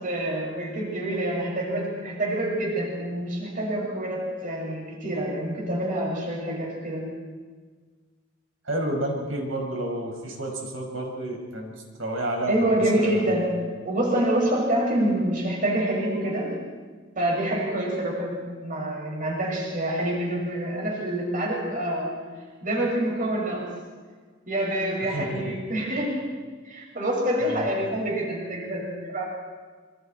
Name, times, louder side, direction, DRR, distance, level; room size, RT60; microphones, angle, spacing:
voice 1, 0.0-7.2 12.5-16.6 17.2-22.3 22.6-23.8 24.5-26.4 26.6-29.3, right 1 dB, 45° right, -2 dB, 6.1 m, -27 dB
voice 2, 8.6-13.4 25.1-25.4 27.4-27.7, right 1 dB, 80° right, 1 dB, 6.0 m, -30 dB
26.5 x 25.5 x 4.5 m, 1.5 s
head